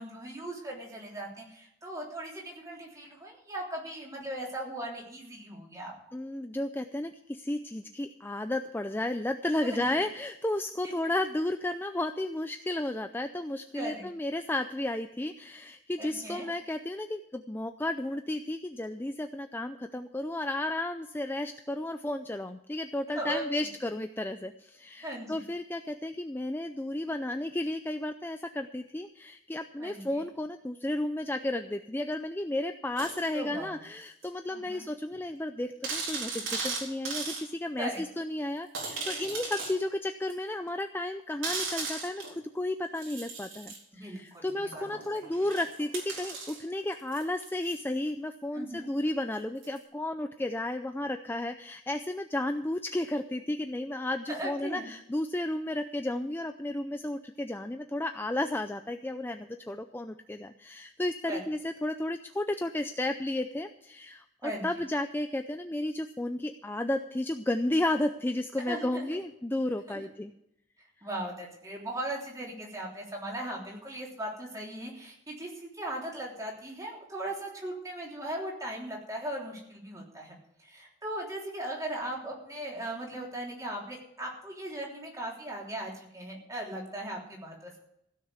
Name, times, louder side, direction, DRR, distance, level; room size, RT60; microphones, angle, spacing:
voice 1, 0.0-5.9 9.6-10.0 10.8-10.9 13.7-14.0 16.0-16.5 23.1-23.4 25.0-25.4 29.8-30.2 33.3-33.8 34.5-34.8 37.8-38.0 44.0-44.8 45.1-45.2 48.5-48.9 54.3-54.9 61.3-61.4 64.4-64.7 68.7-69.2 69.9-70.0 71.0-87.8, right 1 dB, 15° right, -2 dB, 3.4 m, -38 dB
voice 2, 6.1-70.3, left 1 dB, 10° left, 8 dB, 0.4 m, -33 dB
sound 1, 33.0-33.3 34.2-34.3 34.8-34.9 35.1-35.2 35.8-37.4 37.9-38.0 38.7-39.8 40.3-40.4 41.4-42.4 43.0-43.8 44.7-47.8 49.6-49.8, right 4 dB, 80° right, 4.1 m, -37 dB
16.0 x 6.6 x 8.1 m, 0.77 s
head